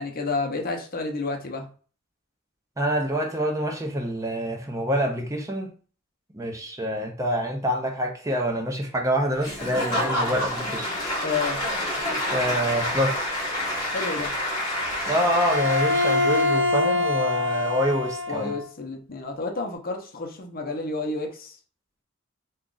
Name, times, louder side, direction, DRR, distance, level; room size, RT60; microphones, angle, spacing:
voice 1, 0.0-1.7 11.2-11.6 13.9-14.3 18.3-21.6, left 3 dB, 45° left, 0.7 m, -30 dB
voice 2, 2.8-5.7 6.3-10.9 12.3-13.3 15.1-18.5, equal, 15° right, 0.6 m, -26 dB
Applause / Crowd, 9.4-16.7, left 1 dB, 20° left, 1.3 m, -28 dB
Bowed string instrument, 15.2-18.6, left 2 dB, 65° right, 0.5 m, -24 dB
3.0 x 2.4 x 3.8 m
head